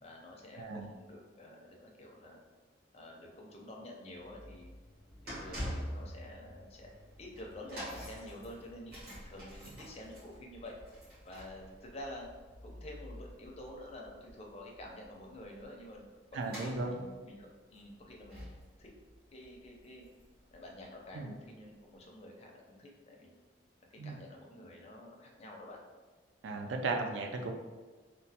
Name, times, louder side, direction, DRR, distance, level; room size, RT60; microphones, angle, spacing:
voice 1, 0.0-2.4 2.9-4.7 5.2-6.9 7.2-10.7 11.2-12.3 12.6-16.1 16.3-18.5 18.8-18.9 19.3-20.1 20.5-23.4 23.9-25.8, left 1 dB, 30° left, -1 dB, 0.4 m, -49 dB
voice 2, 0.6-0.9 16.3-16.9 21.1-21.3 24.0-24.1 26.4-27.5, right 3 dB, 65° right, 4 dB, 0.3 m, -36 dB
sound 1, 4.2-20.5 20.8-21.0 21.8-21.9, equal, 50° right, 1.3 m, -47 dB
3.0 x 2.1 x 2.7 m, 1.3 s
head